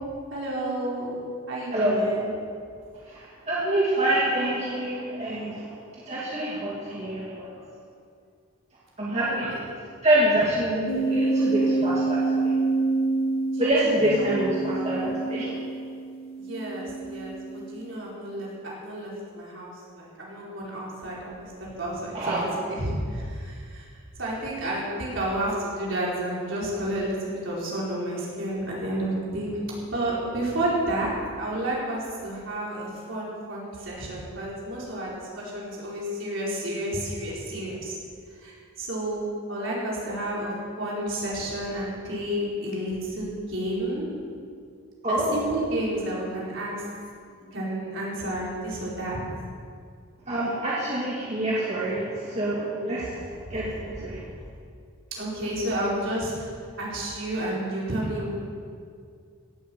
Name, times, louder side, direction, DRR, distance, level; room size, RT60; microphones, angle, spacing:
voice 1, 0.3-1.2 1.5-2.2 9.1-9.6 13.5-14.2 16.4-22.4 22.7-23.9 24.2-29.5 29.9-37.9 38.4-39.2 39.5-40.5 40.8-44.0 45.1-46.8 47.2-49.2 52.9-53.0 54.1-54.2 55.1-56.5 56.8-58.3, right 1 dB, 60° right, -6 dB, 4.7 m, -31 dB
voice 2, 1.7-2.3 3.1-7.5 9.0-9.7 10.0-12.5 13.6-15.6 22.1-22.4 45.0-45.4 50.3-53.2 53.5-54.2, right 1 dB, 30° right, -7 dB, 2.2 m, -26 dB
sound 1, 10.9-17.9, right 3 dB, 80° left, 2.1 m, -27 dB
17.0 x 8.3 x 7.7 m, 2.2 s
head